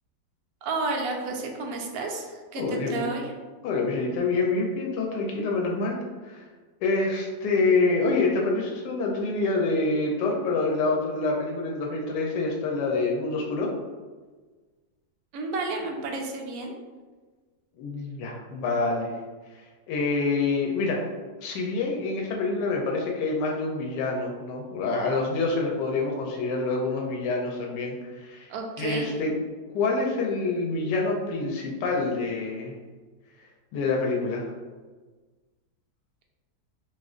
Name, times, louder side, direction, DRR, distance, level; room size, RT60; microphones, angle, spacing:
voice 1, 0.6-3.3 15.3-16.7 28.5-29.1, right 3 dB, 70° right, 1 dB, 1.0 m, -31 dB
voice 2, 2.6-3.0 3.6-6.4 6.8-13.7 17.8-19.1 19.5-21.1 21.4-29.3 29.7-32.8 33.7-34.4, left 3 dB, 85° left, -1 dB, 1.2 m, -27 dB
4.2 x 2.5 x 2.4 m, 1.4 s
omnidirectional pair, 1.9 m